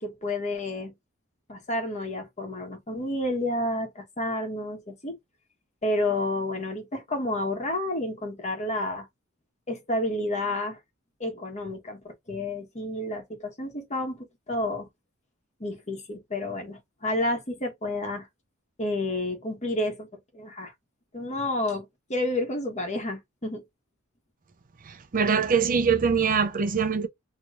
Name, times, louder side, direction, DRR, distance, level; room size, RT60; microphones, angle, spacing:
voice 1, 0.0-0.9 1.5-5.2 5.8-9.1 9.7-10.8 11.2-14.9 15.6-18.3 18.8-20.1 20.3-20.7 21.1-23.6, left 1 dB, 35° left, 1.2 m, -30 dB
voice 2, 24.9-27.1, right 6 dB, 40° right, 0.5 m, -23 dB
3.2 x 3.0 x 2.4 m
head